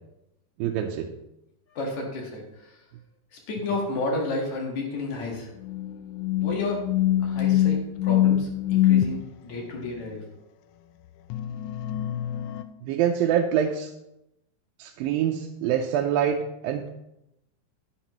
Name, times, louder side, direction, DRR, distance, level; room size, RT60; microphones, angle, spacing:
voice 1, 0.6-1.1 12.9-13.9 14.8-16.9, right 9 dB, 90° right, 2 dB, 2.4 m, -25 dB
voice 2, 1.7-2.8 3.3-5.5 6.4-6.9 7.2-10.2, left 2 dB, 60° left, 0 dB, 2.8 m, -31 dB
sound 1, 5.6-9.1 11.3-12.6, left 12 dB, 80° left, 1.8 m, -24 dB
11.0 x 10.0 x 3.0 m, 0.86 s
omnidirectional pair, 4.0 m